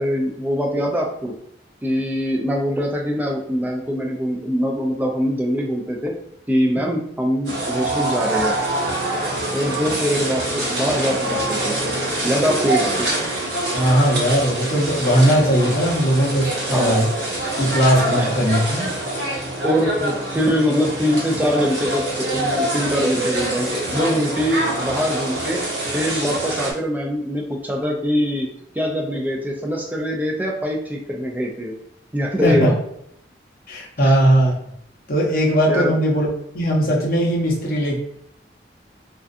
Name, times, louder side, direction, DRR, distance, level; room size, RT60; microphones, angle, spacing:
voice 1, 0.0-1.3 1.8-6.1 6.5-8.5 9.2-11.8 12.2-13.1 16.7-17.0 18.2-18.3 19.6-25.6 25.9-28.5 28.7-31.7 32.1-32.7 34.0-34.1 35.7-35.9, equal, 10° right, 0 dB, 0.3 m, -23 dB
sound 1, 7.4-26.7, right 1 dB, 70° right, 1.3 m, -25 dB
voice 2, 13.7-17.1 17.6-18.9 32.4-32.7 33.7-34.6 35.1-36.3 36.5-38.0, equal, 50° left, -4 dB, 0.7 m, -18 dB
2.4 x 2.3 x 2.4 m, 0.73 s
head